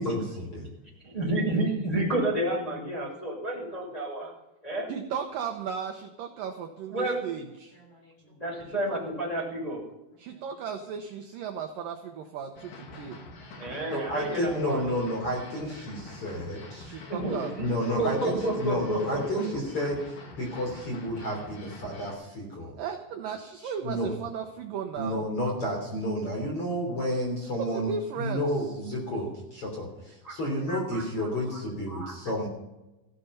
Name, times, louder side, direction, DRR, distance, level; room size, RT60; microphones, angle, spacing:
voice 1, 1.1-4.3 4.6-4.9 6.9-7.3 8.3-9.9 13.5-14.9 17.1-19.4 30.2-30.4 30.7-31.3 31.9-32.1, right 1 dB, 10° left, -2 dB, 6.4 m, -30 dB
voice 2, 4.9-7.7 8.7-9.0 10.2-13.2 16.8-17.5 22.8-25.3 27.6-28.6, right 7 dB, 70° right, 5 dB, 2.2 m, -36 dB
sound 1, 12.6-22.1, left 2 dB, 50° left, 3.3 m, -45 dB
voice 3, 13.1-13.6 13.9-17.0 17.6-22.7 23.6-24.1 25.0-27.9 28.2-32.5, equal, 35° left, 0 dB, 3.9 m, -31 dB
15.5 x 12.5 x 5.7 m, 0.98 s
omnidirectional pair, 5.1 m